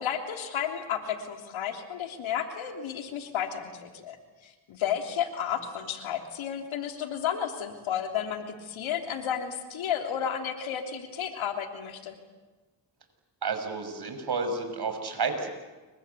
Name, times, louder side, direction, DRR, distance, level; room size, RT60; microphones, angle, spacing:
voice 1, 0.0-4.2 4.4-12.2, left 8 dB, 90° left, 4 dB, 3.3 m, -32 dB
voice 2, 13.4-15.5, right 4 dB, 55° right, 6 dB, 6.4 m, -31 dB
29.0 x 24.0 x 8.4 m, 1.2 s
cardioid pair, 75°, 46 cm